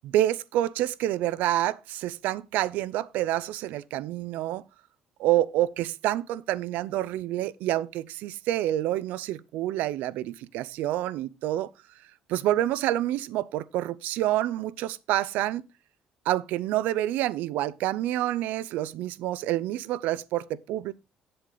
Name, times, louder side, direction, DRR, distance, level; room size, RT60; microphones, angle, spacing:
voice 1, 0.0-4.6 5.2-11.7 12.3-15.6 16.3-20.9, right 14 dB, 85° right, 0.4 m, -28 dB
8.3 x 7.7 x 3.9 m
cardioid pair, 120°, 3 cm